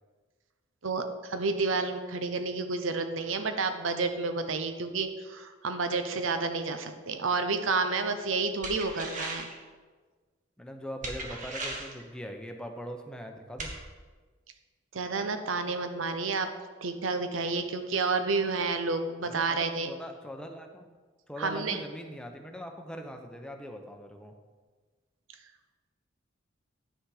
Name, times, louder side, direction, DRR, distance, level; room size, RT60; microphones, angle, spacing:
voice 1, 0.8-9.5 14.9-16.5 16.8-19.9 21.4-21.8, right 4 dB, 90° right, 8 dB, 0.8 m, -30 dB
sound 1, 8.6-9.6 11.0-12.0 13.6-13.8, right 2 dB, 40° right, 1.3 m, -37 dB
voice 2, 10.6-13.7 19.2-20.9 21.3-24.3, equal, 5° left, 4 dB, 0.8 m, -41 dB
9.9 x 6.4 x 4.8 m, 1.4 s
head